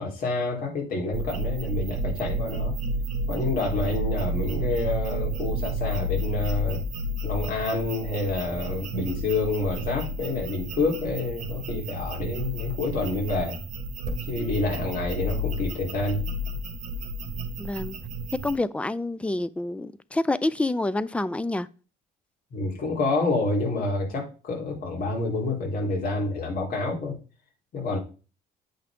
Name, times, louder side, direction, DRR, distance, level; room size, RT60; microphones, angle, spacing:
voice 1, 0.0-2.7 3.3-6.8 7.2-13.6 14.3-16.2 22.5-27.2 27.7-28.0, left 2 dB, 60° left, 4.0 m, -28 dB
sound 1, 1.1-18.5, right 1 dB, 45° right, 2.1 m, -31 dB
voice 2, 17.6-18.0 18.4-21.7, left 2 dB, 5° left, 0.4 m, -27 dB
8.6 x 5.7 x 3.7 m
cardioid pair, 110°, 17 cm